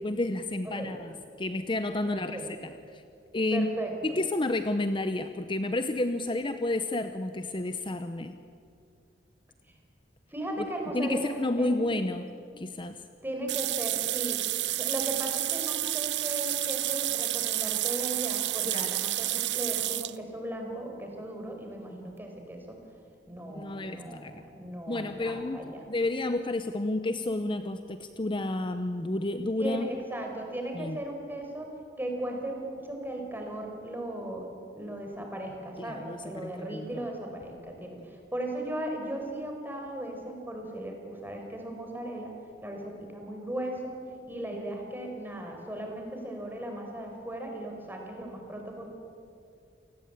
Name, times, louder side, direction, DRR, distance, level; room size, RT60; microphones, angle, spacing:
voice 1, 0.0-3.0 3.3-3.7 4.0-8.4 10.6-10.7 10.9-12.2 12.6-13.0 18.6-19.0 23.5-24.5 24.9-25.6 25.9-29.9 30.7-31.0 35.8-37.1, left 2 dB, 30° left, 9 dB, 0.8 m, -31 dB
voice 2, 2.0-2.5 3.5-4.2 10.3-11.9 13.2-14.4 14.8-22.8 23.3-25.8 29.6-31.7 32.0-34.5 34.7-42.3 42.6-44.0 44.3-48.9, right 1 dB, 10° right, 2 dB, 4.9 m, -37 dB
sound 1, 13.5-20.2, right 16 dB, 75° right, 0.7 m, -30 dB
28.5 x 19.5 x 8.9 m, 2.4 s
head